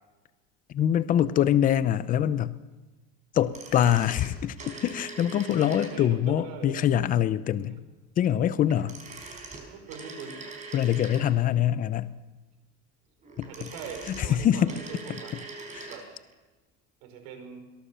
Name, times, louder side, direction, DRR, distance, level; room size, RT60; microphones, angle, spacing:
voice 1, 0.7-2.6 3.3-7.8 8.2-9.0 10.7-12.1 13.4-13.7 14.2-14.7 15.1-15.2 15.7-15.9, left 10 dB, 25° left, 15 dB, 0.7 m, -24 dB
sound 1, 3.4-6.2 8.7-11.6 13.2-16.1 16.3-16.4, right 3 dB, 25° right, 4.7 m, -43 dB
voice 2, 5.6-6.8 7.7-7.8 9.7-10.4 13.5-15.4 15.9-16.1 17.0-17.6, right 6 dB, 65° right, 6 dB, 5.1 m, -42 dB
22.5 x 19.0 x 7.0 m, 1.2 s
cardioid pair, 165°, 31 cm